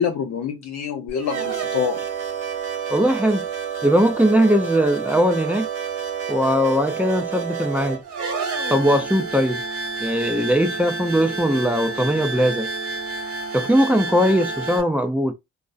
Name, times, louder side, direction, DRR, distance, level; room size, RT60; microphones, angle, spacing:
voice 1, 0.0-2.0, left 7 dB, 65° left, 0.5 m, -25 dB
sound 1, 1.1-14.8, right 5 dB, 85° right, 1.2 m, -29 dB
voice 2, 2.9-3.5 3.8-5.7 6.3-8.0 8.7-9.6 10.0-12.7 13.5-15.3, equal, 5° right, 0.4 m, -20 dB
2.5 x 2.0 x 2.4 m
cardioid pair, 90°, 30 cm